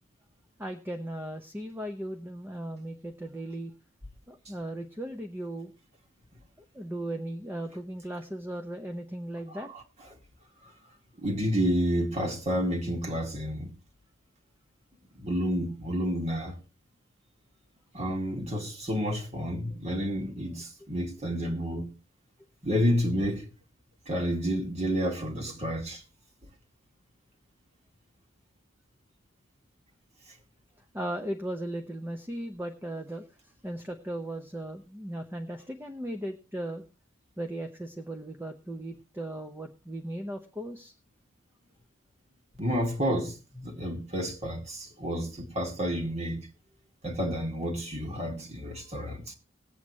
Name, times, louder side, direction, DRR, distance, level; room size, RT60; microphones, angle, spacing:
voice 1, 0.6-3.7 4.3-5.7 6.7-9.7 30.9-36.8 37.4-40.9, right 1 dB, 10° right, 0.8 m, -37 dB
voice 2, 11.2-13.7 15.2-16.5 17.9-21.9 22.6-23.5 24.1-26.0 42.6-46.5 47.0-49.3, equal, 35° right, 2.3 m, -30 dB
20.0 x 8.1 x 3.1 m
head